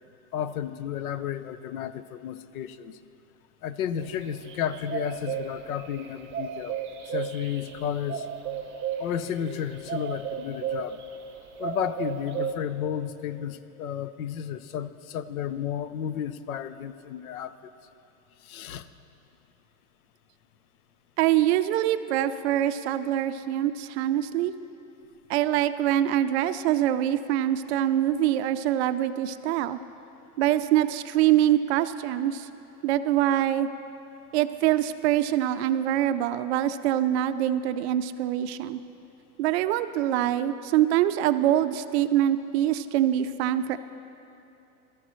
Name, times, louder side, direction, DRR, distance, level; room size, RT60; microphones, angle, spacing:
voice 1, 0.3-3.0 3.6-6.8 7.1-8.3 9.0-11.0 11.6-17.5 18.4-18.9, left 9 dB, 75° left, 13 dB, 0.7 m, -32 dB
sound 1, 4.0-11.3 11.6-12.5, right 7 dB, 25° right, 1.2 m, -34 dB
voice 2, 21.2-24.5 25.3-29.8 30.4-32.5 32.8-33.7 34.3-38.8 39.4-43.8, right 12 dB, 50° right, 12 dB, 0.5 m, -24 dB
17.0 x 14.0 x 3.1 m, 2.7 s
hypercardioid pair, 130°, 43 cm